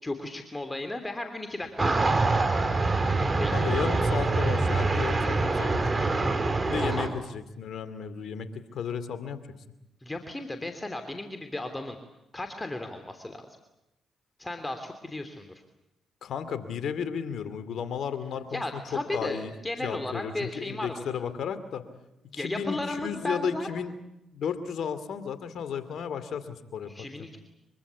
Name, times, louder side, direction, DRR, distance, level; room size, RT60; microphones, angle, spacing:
voice 1, 0.0-2.6 3.4-3.5 6.8-7.1 10.0-12.0 12.3-13.5 14.4-15.5 18.5-21.0 22.3-23.7 26.9-27.4, left 2 dB, 20° left, 7 dB, 3.1 m, -35 dB
sound 1, 1.8-7.1, right 3 dB, 35° right, 4.7 m, -25 dB
voice 2, 3.5-6.3 6.7-9.5 16.2-18.8 19.1-19.5 19.8-21.9 22.3-23.9 24.3-26.9 27.2-27.3, left 7 dB, 65° left, 12 dB, 2.6 m, -34 dB
25.0 x 24.5 x 8.4 m, 0.87 s
hypercardioid pair, 45°, 0 cm